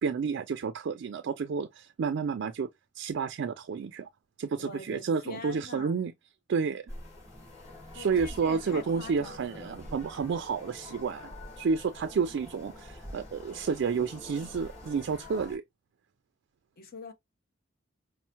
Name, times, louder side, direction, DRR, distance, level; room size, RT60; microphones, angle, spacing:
voice 1, 0.0-2.7 3.0-4.1 4.4-6.1 6.5-6.8 7.9-15.6, right 5 dB, 60° right, 0.3 m, -30 dB
voice 2, 4.6-6.0 7.9-9.7 16.8-17.1, left 3 dB, 50° left, 0.7 m, -44 dB
sound 1, 6.9-15.6, left 1 dB, 35° left, 2.4 m, -46 dB
5.4 x 2.0 x 2.8 m
head